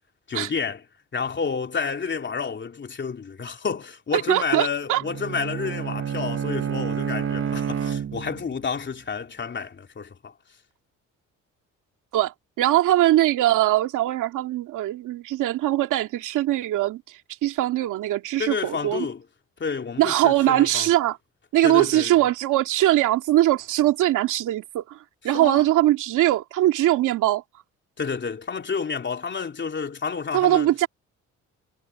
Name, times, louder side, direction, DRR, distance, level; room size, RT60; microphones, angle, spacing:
voice 1, 0.3-0.8 1.1-10.3 18.4-19.2 19.6-20.9 21.6-22.2 25.3-25.7 28.0-30.7, left 5 dB, 40° left, 3.2 m, -30 dB
voice 2, 4.3-5.0 12.1-19.1 20.0-21.2 21.5-25.0 25.2-27.4 30.3-30.9, right 14 dB, 90° right, 2.3 m, -21 dB
Bowed string instrument, 5.0-8.6, right 8 dB, 45° right, 1.3 m, -29 dB
cardioid pair, 90°, 30 cm